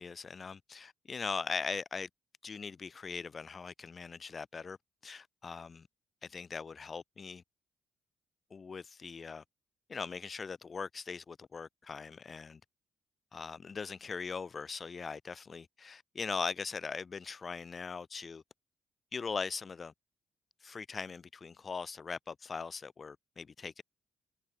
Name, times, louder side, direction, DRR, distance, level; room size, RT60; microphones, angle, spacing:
voice 1, 0.0-2.1 2.4-4.8 5.0-5.9 6.2-7.4 8.5-9.4 9.9-12.6 13.3-18.4 19.1-19.9 20.6-23.8, left 5 dB, 45° left, 4.6 m, -40 dB
hypercardioid pair, 45°, 0 cm